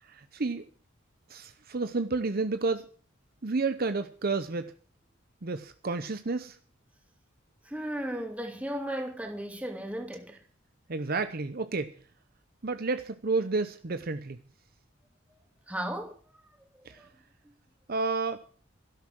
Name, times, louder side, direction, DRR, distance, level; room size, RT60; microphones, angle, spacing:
voice 1, 0.1-0.7 1.3-2.9 3.4-4.7 5.4-6.6 10.9-11.9 12.6-14.4 16.8-17.0 17.9-18.4, right 3 dB, 50° right, 0.8 m, -31 dB
voice 2, 7.6-10.4 15.7-16.2 17.0-17.1, right 1 dB, 5° right, 2.9 m, -35 dB
12.5 x 11.5 x 6.1 m
head